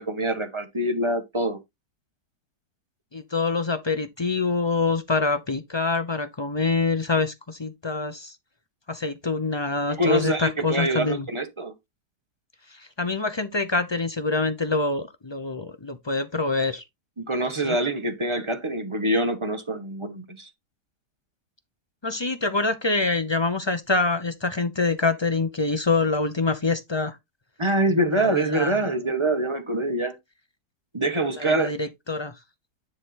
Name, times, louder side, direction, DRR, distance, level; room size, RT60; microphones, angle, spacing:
voice 1, 0.0-1.6 9.9-11.7 17.2-20.5 27.6-30.2 30.9-31.7, right 1 dB, 20° right, 1.4 m, -25 dB
voice 2, 3.1-8.3 8.9-11.2 12.7-16.8 17.6-17.8 22.0-27.2 28.1-28.8 31.4-32.3, left 3 dB, 45° left, 0.3 m, -25 dB
9.9 x 3.7 x 4.1 m
omnidirectional pair, 1.8 m